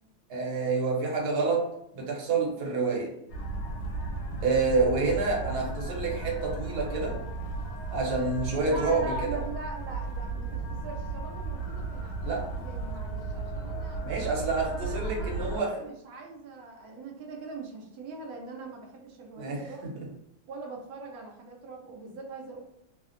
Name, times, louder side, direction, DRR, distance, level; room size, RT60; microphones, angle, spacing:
voice 1, 0.3-3.1 4.4-7.2 7.9-9.4 12.2-12.5 14.0-15.7 19.4-19.7, right 3 dB, 60° right, -1 dB, 1.1 m, -28 dB
sound 1, 3.3-15.6, right 3 dB, 85° left, 1.5 m, -35 dB
voice 2, 8.6-14.1 14.7-19.9 20.4-22.6, right 3 dB, 90° right, 0 dB, 0.8 m, -42 dB
3.3 x 2.1 x 2.5 m, 0.78 s
omnidirectional pair, 2.3 m